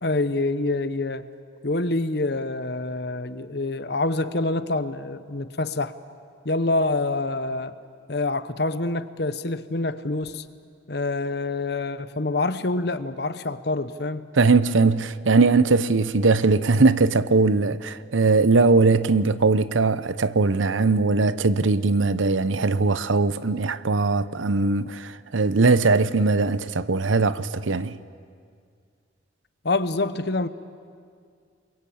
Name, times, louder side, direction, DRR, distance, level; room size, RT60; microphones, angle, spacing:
voice 1, 0.0-1.3 1.6-5.9 6.4-7.7 8.1-10.5 10.9-14.3 29.6-30.5, left 2 dB, 55° left, 1.0 m, -26 dB
voice 2, 14.3-28.0, right 3 dB, 85° right, 0.8 m, -20 dB
29.5 x 22.0 x 8.7 m
head